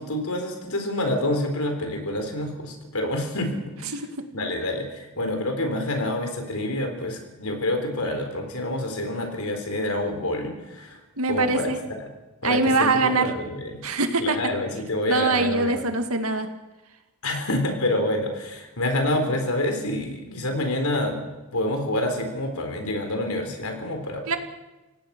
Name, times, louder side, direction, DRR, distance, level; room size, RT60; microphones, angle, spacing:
voice 1, 0.0-3.9 4.3-11.0 11.3-12.1 12.4-13.8 14.2-15.8 17.2-21.2 21.5-24.4, left 1 dB, 80° left, 5 dB, 4.2 m, -27 dB
voice 2, 11.2-11.8 12.4-13.3 13.8-14.4 15.1-16.5 24.3-24.4, right 3 dB, 75° right, 7 dB, 2.1 m, -23 dB
26.5 x 17.5 x 6.1 m, 1.1 s
head